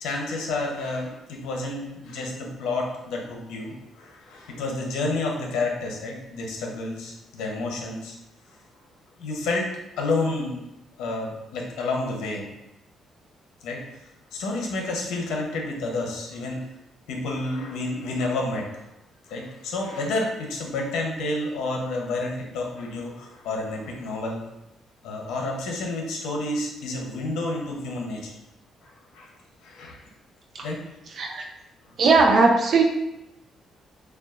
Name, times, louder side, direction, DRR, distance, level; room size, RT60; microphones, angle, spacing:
voice 1, 0.0-8.2 9.2-9.7 10.0-10.6 11.0-12.5 13.6-13.8 14.3-16.6 17.1-18.7 19.3-24.4 25.0-28.3 29.1-29.3 29.6-30.0 30.6-30.8, left 2 dB, 90° left, 0 dB, 0.9 m, -30 dB
voice 2, 32.0-32.8, right 3 dB, 60° right, 2 dB, 0.5 m, -18 dB
6.7 x 2.4 x 2.5 m, 0.92 s
cardioid pair, 90°, 0 cm